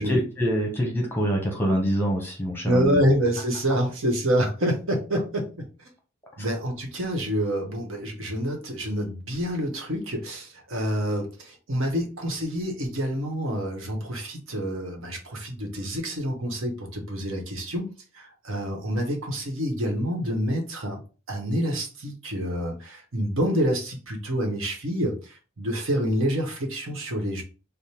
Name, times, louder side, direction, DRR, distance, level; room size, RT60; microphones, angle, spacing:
voice 1, 0.0-3.0 6.4-6.5, equal, 10° left, 1 dB, 0.8 m, -25 dB
voice 2, 2.6-5.7 6.4-17.9 18.1-21.0 21.3-27.4, equal, 80° right, 2 dB, 1.1 m, -27 dB
3.5 x 2.1 x 4.3 m, 0.34 s
head